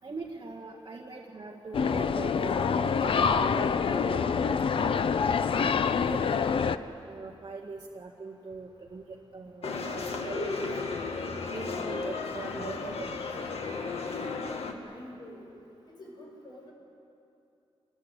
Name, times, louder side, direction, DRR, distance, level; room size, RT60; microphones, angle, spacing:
voice 1, 0.0-4.6 5.2-6.6 7.1-10.6 11.5-13.2, right 3 dB, 40° right, -2 dB, 1.9 m, -41 dB
sound 1, 1.7-6.8, left 6 dB, 60° left, 0.6 m, -26 dB
sound 2, 9.6-14.7, left 4 dB, 80° left, 1.8 m, -34 dB
voice 2, 14.8-15.4 16.0-16.7, left 1 dB, 45° left, -2 dB, 6.4 m, -47 dB
25.0 x 20.5 x 8.3 m, 2.8 s
wide cardioid pair, 165°, 10 cm